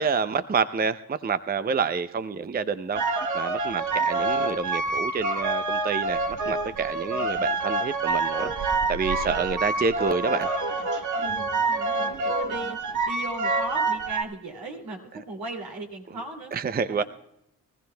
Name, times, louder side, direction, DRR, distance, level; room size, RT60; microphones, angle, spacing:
voice 1, 0.0-10.5 16.5-17.0, right 5 dB, 25° right, 12 dB, 0.5 m, -28 dB
sound 1, 2.9-14.2, right 3 dB, 50° right, 1.1 m, -27 dB
voice 2, 11.1-12.8 13.0-16.5 16.9-17.0, right 2 dB, 75° right, 2 dB, 2.7 m, -38 dB
23.0 x 15.0 x 2.2 m, 0.80 s
supercardioid pair, 55°, 37 cm